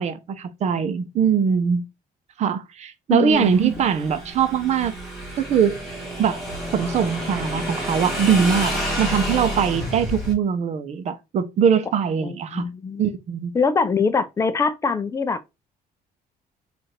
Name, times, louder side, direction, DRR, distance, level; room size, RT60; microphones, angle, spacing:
voice 1, 0.0-1.8 2.4-4.9 5.4-5.8 6.2-6.4 6.7-12.7 13.0-13.5, right 7 dB, 45° right, 0.6 m, -22 dB
voice 2, 3.1-3.5 12.2-13.0 13.5-15.4, left 5 dB, 20° left, 0.5 m, -23 dB
Motorcycle / Engine, 3.3-10.3, equal, ahead, 2.4 m, -29 dB
4.8 x 2.5 x 4.3 m
cardioid pair, 165°, 16 cm